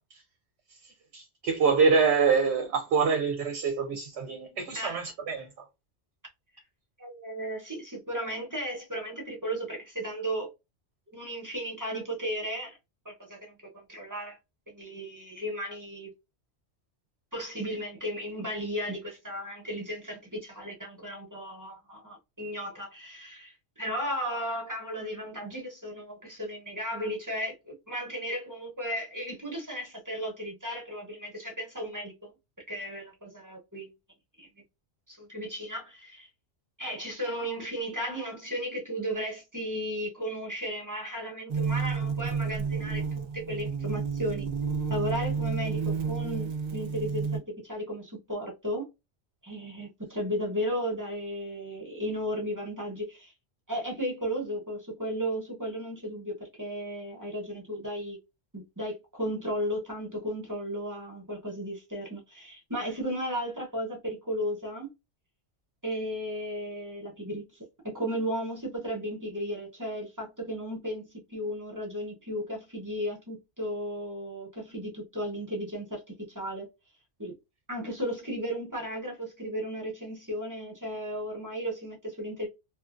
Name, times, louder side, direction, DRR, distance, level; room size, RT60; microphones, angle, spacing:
voice 1, 1.1-5.5, right 5 dB, 70° right, 0.8 m, -25 dB
voice 2, 7.0-10.5 11.1-12.8 13.0-14.4 14.7-16.1 17.3-32.3 32.7-33.9 34.4-34.5 35.1-36.3 36.8-44.5 44.9-48.8 49.4-53.3 53.7-58.2 58.5-64.9 65.8-67.4 67.8-76.7 77.2-77.3 77.7-82.5, equal, 20° right, 0.8 m, -35 dB
sound 1, 41.5-47.4, right 5 dB, 50° right, 0.5 m, -30 dB
2.8 x 2.4 x 2.4 m
omnidirectional pair, 1.2 m